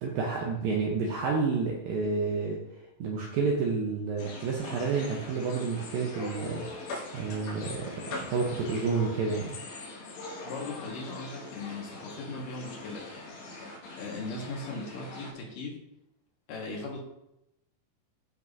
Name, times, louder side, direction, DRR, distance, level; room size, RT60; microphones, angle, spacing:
voice 1, 0.0-2.6 3.0-6.6 7.1-9.6, right 4 dB, 75° right, -1 dB, 2.2 m, -30 dB
sound 1, 4.2-15.3, left 2 dB, 75° left, 4.1 m, -42 dB
voice 2, 10.4-13.4 14.0-15.8 16.5-17.0, left 3 dB, 60° left, -1 dB, 2.7 m, -38 dB
13.5 x 5.9 x 2.7 m, 0.87 s
omnidirectional pair, 5.0 m